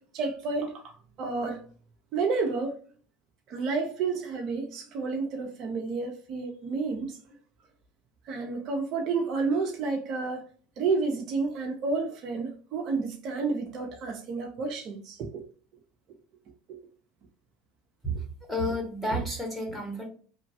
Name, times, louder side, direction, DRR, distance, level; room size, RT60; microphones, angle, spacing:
voice 1, 0.1-1.6 2.1-2.8 3.5-7.2 8.2-10.5 10.8-15.5 16.7-16.8, right 4 dB, 55° right, 0.6 m, -30 dB
voice 2, 18.5-20.1, equal, 5° right, 1.3 m, -30 dB
3.0 x 2.2 x 2.7 m
supercardioid pair, 95°, 0 cm